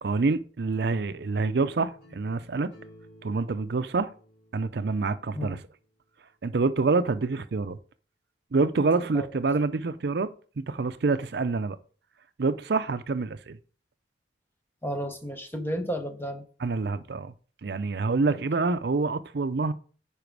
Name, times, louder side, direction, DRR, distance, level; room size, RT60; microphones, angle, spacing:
voice 1, 0.0-2.7 3.2-4.1 4.5-5.6 6.4-7.8 8.5-10.3 10.6-11.8 12.4-13.6 16.6-17.3 17.6-19.7, right 3 dB, 60° right, 0.5 m, -26 dB
sound 1, 0.7-5.6, equal, 65° left, 3.8 m, -53 dB
voice 2, 14.8-16.4 18.3-18.4, equal, 10° left, 0.9 m, -32 dB
10.0 x 4.9 x 4.7 m
head